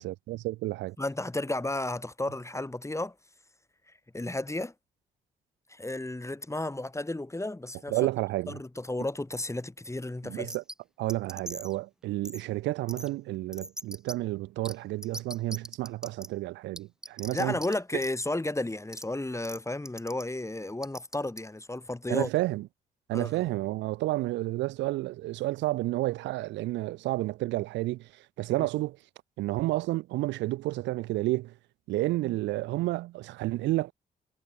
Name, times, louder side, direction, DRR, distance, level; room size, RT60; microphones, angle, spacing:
voice 1, 0.0-1.0 7.9-8.6 10.2-10.6 11.0-17.6 22.1-22.7 23.1-28.1 28.4-29.0 29.4-31.5 31.9-33.9, right 18 dB, 80° right, 0.4 m, -30 dB
voice 2, 1.0-3.1 4.1-4.7 5.7-8.0 8.5-10.5 17.3-22.3 23.1-23.4 28.6-28.7, left 2 dB, 15° left, 3.3 m, -33 dB
sound 1, 10.5-10.7 11.1-11.7 12.2-12.4 12.9-13.1 13.5-14.1 14.6-14.7 15.0-16.3 16.8-17.7 18.0-18.1 18.9-19.0 19.4-19.6 19.9-20.2 20.8-21.4, equal, 5° right, 1.0 m, -40 dB
supercardioid pair, 55°, 19 cm